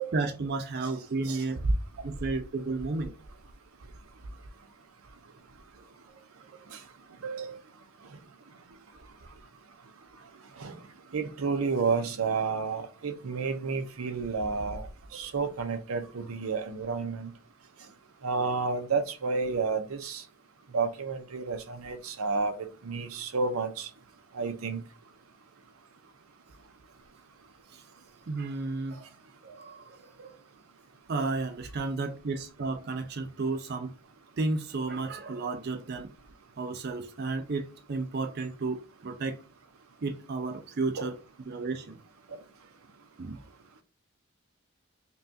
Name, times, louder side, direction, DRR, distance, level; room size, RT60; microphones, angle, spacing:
voice 1, 0.0-1.6 2.0-3.1 27.7-27.8 28.3-29.1 29.4-30.3 31.1-33.9 34.4-36.1 36.6-39.4 40.0-41.1 41.5-42.0 43.2-43.4, right 3 dB, 50° right, 0.4 m, -32 dB
voice 2, 7.2-7.6 10.6-10.8 11.1-17.3 18.2-20.2 20.7-23.9 24.3-24.8 31.2-31.3 41.0-41.1 42.3-42.4, right 4 dB, 85° right, 0.7 m, -31 dB
5.4 x 2.3 x 2.7 m
head